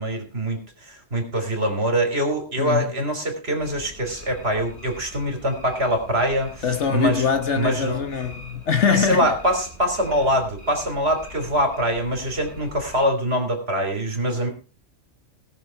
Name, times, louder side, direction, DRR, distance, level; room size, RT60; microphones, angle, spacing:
voice 1, 0.0-7.2 7.5-8.0 8.8-14.5, equal, 55° right, 3.6 m, -24 dB
voice 2, 2.6-2.9 6.6-9.3, left 6 dB, 65° left, 1.5 m, -23 dB
sound 1, 3.6-13.1, left 1 dB, 85° left, 4.4 m, -43 dB
18.5 x 7.0 x 4.5 m
omnidirectional pair, 1.3 m